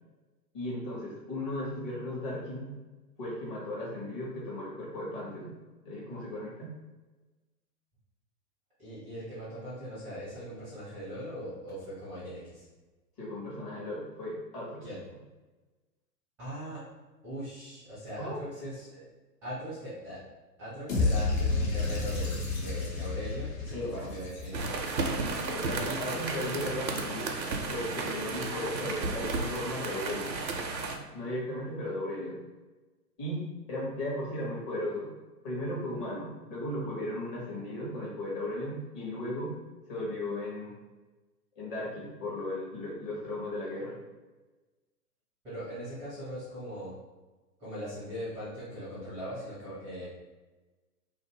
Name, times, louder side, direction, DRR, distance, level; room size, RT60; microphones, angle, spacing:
voice 1, 0.5-2.7 3.2-5.5 5.8-6.8 13.2-14.9 18.2-18.4 23.7-24.1 25.5-27.3 27.7-30.4 30.9-32.4 33.2-35.1 35.4-39.6 39.9-40.7 41.6-43.9, left 1 dB, 30° left, -5 dB, 0.9 m, -36 dB
voice 2, 8.8-12.6 14.8-15.0 16.4-16.8 17.2-19.0 19.4-20.2 20.6-25.0 25.7-26.0 45.4-46.9 47.6-50.1, equal, 5° right, -9 dB, 0.5 m, -40 dB
sound 1, 20.9-25.0, left 3 dB, 55° left, 1.1 m, -30 dB
sound 2, 24.5-31.0, right 3 dB, 90° right, 0.6 m, -33 dB
2.5 x 2.5 x 2.7 m, 1.2 s
figure-of-eight pair, 120°, 49 cm